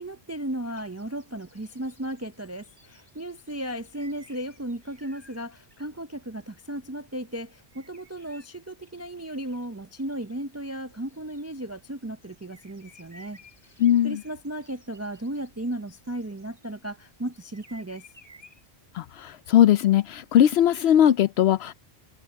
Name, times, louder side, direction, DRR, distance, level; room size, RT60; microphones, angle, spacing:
voice 1, 0.0-13.4 14.0-18.0, right 1 dB, 25° right, 0.4 m, -35 dB
sound 1, 0.6-5.9 7.7-10.4 10.8-11.6 12.0-16.7 17.1-18.7, equal, 25° left, 7.9 m, -56 dB
voice 2, 13.8-14.2 18.9-21.7, left 11 dB, 75° left, 0.8 m, -19 dB
omnidirectional pair, 1.1 m